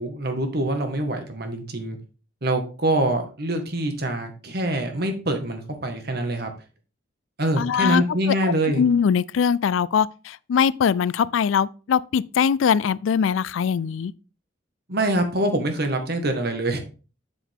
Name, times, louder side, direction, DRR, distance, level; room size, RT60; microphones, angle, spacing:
voice 1, 0.0-2.0 2.4-6.5 7.4-8.8 14.9-16.8, right 1 dB, 55° right, 1.6 m, -25 dB
voice 2, 7.6-8.0 8.4-14.1, left 7 dB, 80° left, 0.4 m, -22 dB
7.2 x 7.0 x 3.6 m
head